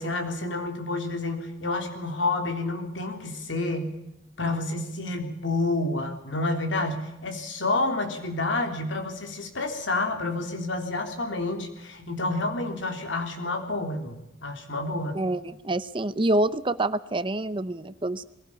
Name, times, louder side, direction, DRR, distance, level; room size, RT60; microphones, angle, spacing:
voice 1, 0.0-4.0 4.4-14.2 14.4-15.2, left 2 dB, 75° left, 5 dB, 3.6 m, -29 dB
voice 2, 15.1-18.2, right 1 dB, 25° right, 14 dB, 0.7 m, -27 dB
21.5 x 17.0 x 8.6 m, 0.92 s
head